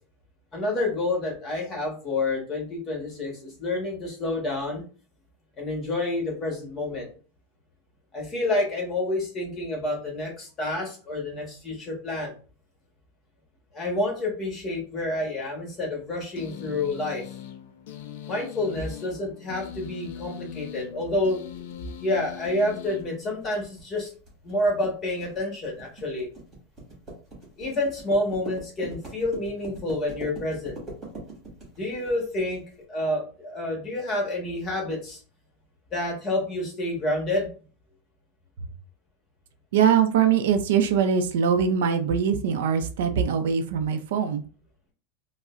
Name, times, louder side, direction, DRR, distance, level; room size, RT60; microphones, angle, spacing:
voice 1, 0.5-4.8 5.6-7.1 8.1-12.3 13.7-17.2 18.3-21.4 22.0-24.1 24.4-26.3 27.6-30.8 31.7-32.6 32.9-35.2 35.9-37.5, left 2 dB, 20° left, 0 dB, 1.3 m, -28 dB
sound 1, 16.4-23.8, left 9 dB, 75° left, 0.5 m, -41 dB
sound 2, 21.0-32.6, right 2 dB, 20° right, 1.7 m, -42 dB
voice 2, 39.7-44.4, right 7 dB, 75° right, 8 dB, 0.5 m, -22 dB
4.9 x 2.0 x 2.5 m, 0.38 s
supercardioid pair, 160°, 0 cm